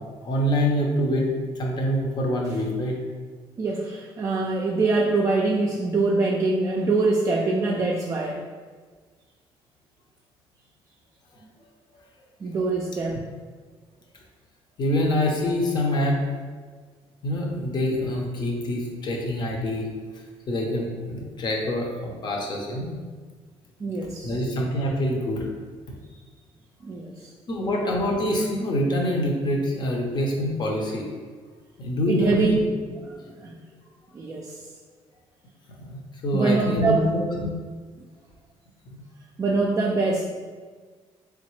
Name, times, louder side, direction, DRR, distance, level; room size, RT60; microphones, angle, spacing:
voice 1, 0.2-1.3 1.5-3.0 14.8-16.2 17.2-19.9 20.5-22.9 24.2-25.5 27.5-31.0 31.8-32.6 35.8-37.5 38.9-39.0, equal, 45° left, 0 dB, 0.8 m, -25 dB
voice 2, 3.6-8.4 12.4-13.2 23.8-24.4 26.8-27.3 32.1-32.6 33.0-33.5 34.1-34.6 36.3-37.1 39.4-40.3, right 3 dB, 30° right, -2 dB, 0.4 m, -24 dB
3.9 x 3.5 x 3.2 m, 1.5 s
cardioid pair, 130°, 11 cm